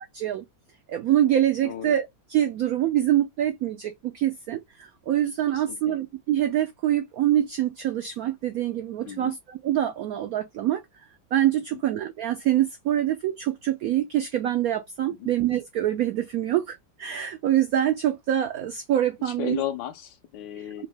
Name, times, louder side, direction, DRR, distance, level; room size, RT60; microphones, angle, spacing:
voice 1, 0.1-0.4 0.9-10.8 11.3-19.6, right 12 dB, 85° right, 0.8 m, -25 dB
voice 2, 1.6-2.0 5.5-6.0 9.0-9.4 11.7-11.8 15.2-15.3 19.2-20.9, left 11 dB, 75° left, 1.3 m, -35 dB
3.9 x 2.6 x 3.3 m
omnidirectional pair, 2.1 m